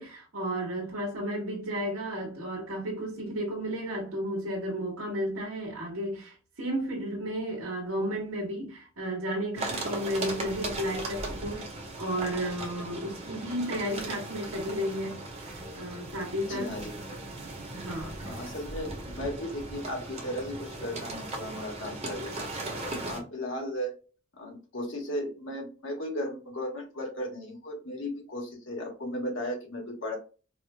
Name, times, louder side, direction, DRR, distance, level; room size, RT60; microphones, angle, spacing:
voice 1, 0.0-16.8 17.7-18.5, equal, 80° right, 1.5 m, -33 dB
sound 1, 9.5-23.2, right 2 dB, 30° right, 0.9 m, -38 dB
voice 2, 16.5-17.0 18.2-22.5 23.1-23.9 24.4-30.2, left 1 dB, 60° left, 1.6 m, -36 dB
4.7 x 2.6 x 2.2 m
head